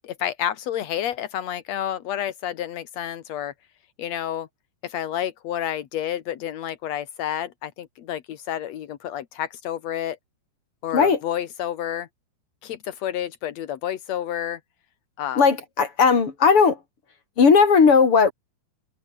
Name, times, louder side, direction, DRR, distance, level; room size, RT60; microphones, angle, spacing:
voice 1, 0.0-3.5 4.0-4.5 4.8-10.2 10.8-12.1 12.6-14.6 15.2-15.4, left 10 dB, 65° left, 1.7 m, -30 dB
voice 2, 15.4-16.8 17.4-18.3, left 5 dB, 35° left, 4.3 m, -16 dB
omnidirectional pair, 4.9 m